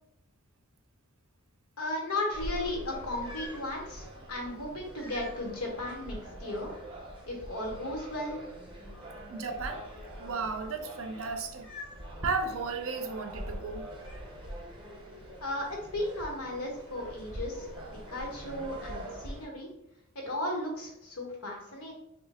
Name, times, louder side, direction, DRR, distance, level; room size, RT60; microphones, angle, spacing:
voice 1, 1.8-6.7 7.3-8.4 15.4-19.7 20.1-21.9, left 1 dB, 85° left, -1 dB, 1.1 m, -35 dB
sound 1, 2.3-19.5, equal, 25° right, 0.7 m, -43 dB
voice 2, 9.3-9.8 10.2-11.7 12.2-13.8, right 4 dB, 65° right, 6 dB, 0.5 m, -34 dB
3.0 x 2.2 x 4.1 m, 0.80 s
head